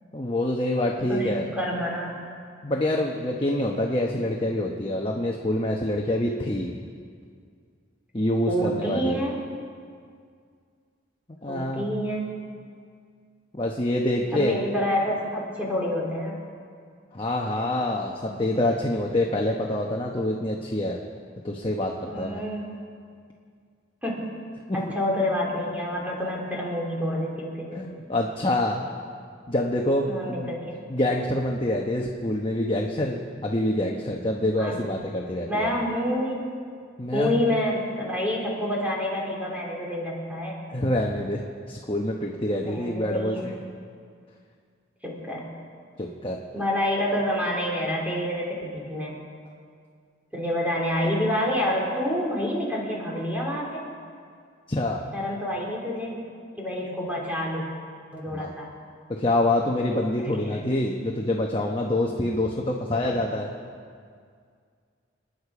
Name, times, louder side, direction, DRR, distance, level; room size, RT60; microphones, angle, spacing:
voice 1, 0.1-1.5 2.6-6.7 8.1-9.2 11.4-11.9 13.5-14.6 17.1-21.0 21.4-22.4 24.7-24.9 27.7-28.8 29.5-30.6 30.9-35.7 37.0-37.6 40.7-41.4 41.7-43.6 46.0-46.4 54.7-55.0 58.3-58.5 59.1-63.5, left 1 dB, 25° left, 0 dB, 1.0 m, -26 dB
voice 2, 1.1-2.2 8.5-9.4 11.5-12.4 14.3-16.4 18.3-18.4 22.1-22.7 24.0-24.3 24.7-27.9 30.0-30.8 34.6-34.7 35.5-36.5 37.1-40.6 42.6-43.4 45.0-45.5 46.5-49.1 50.3-53.8 55.1-56.2 56.6-57.6 58.1-58.7 60.4-60.5 63.0-63.2, equal, 10° right, -3 dB, 3.1 m, -28 dB
28.0 x 10.0 x 4.9 m, 2.2 s
head